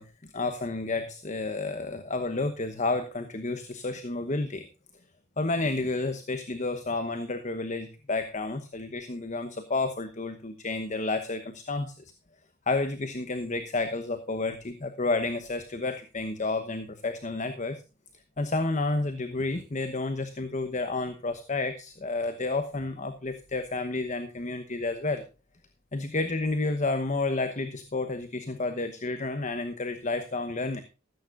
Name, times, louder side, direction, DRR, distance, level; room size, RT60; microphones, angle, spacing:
voice 1, 0.0-4.7 5.4-12.1 12.7-17.8 18.4-25.2 25.9-30.8, left 3 dB, 35° left, 9 dB, 1.0 m, -30 dB
14.5 x 13.0 x 2.5 m, 0.32 s
head